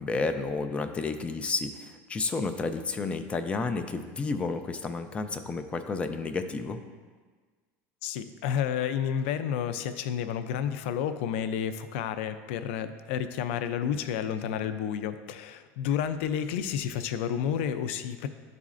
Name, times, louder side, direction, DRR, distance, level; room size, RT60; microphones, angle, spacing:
voice 1, 0.0-6.8, left 4 dB, 20° left, 7 dB, 0.4 m, -31 dB
voice 2, 8.0-18.3, left 8 dB, 80° left, 11 dB, 0.4 m, -30 dB
10.5 x 4.1 x 2.5 m, 1.5 s
supercardioid pair, 140°, 7 cm